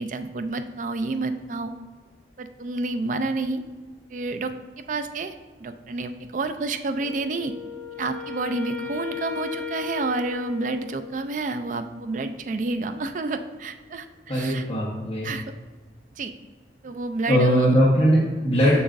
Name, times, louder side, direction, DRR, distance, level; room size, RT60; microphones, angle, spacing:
voice 1, 0.0-1.7 2.4-3.6 4.1-5.3 5.6-7.5 8.0-14.7 15.2-15.4 16.2-16.3 16.8-17.8, right 3 dB, 45° right, 9 dB, 0.4 m, -29 dB
Wind instrument woodwind instrument, 7.0-11.3, left 8 dB, 10° left, 2.0 m, -36 dB
voice 2, 14.3-15.3 17.3-18.8, equal, 35° left, -8 dB, 1.1 m, -20 dB
6.9 x 6.2 x 2.6 m, 1.4 s
head